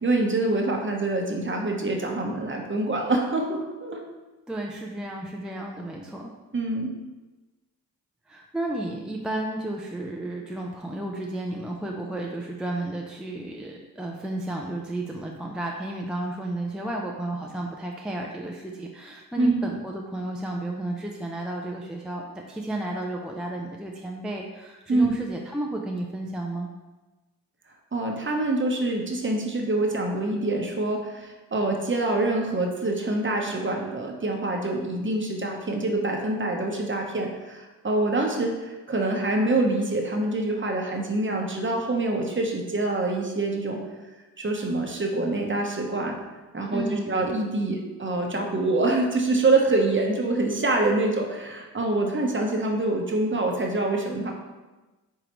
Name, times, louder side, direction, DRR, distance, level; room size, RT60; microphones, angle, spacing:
voice 1, 0.0-4.0 6.5-6.9 19.4-19.6 24.9-25.1 27.9-43.8 44.4-46.2 46.5-54.3, right 2 dB, 30° right, 1 dB, 0.9 m, -25 dB
voice 2, 4.5-6.3 8.3-26.7 46.7-47.2, right 1 dB, ahead, 0 dB, 0.4 m, -32 dB
4.6 x 3.8 x 3.0 m, 1.2 s
cardioid pair, 50°, 38 cm